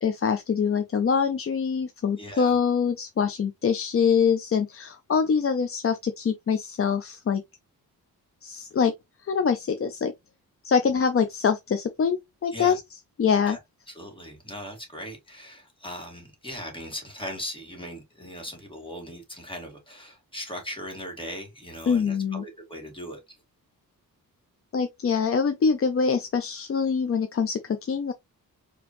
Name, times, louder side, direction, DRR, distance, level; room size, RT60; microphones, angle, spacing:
voice 1, 0.0-7.4 8.4-8.9 9.3-10.1 10.6-12.8 13.2-13.6 21.9-22.4 24.7-28.1, left 6 dB, 40° left, 0.6 m, -24 dB
voice 2, 2.2-2.5 12.5-12.8 13.5-13.6 13.9-23.2, equal, 15° left, 2.0 m, -39 dB
5.1 x 3.0 x 3.0 m
wide cardioid pair, 120°, 36 cm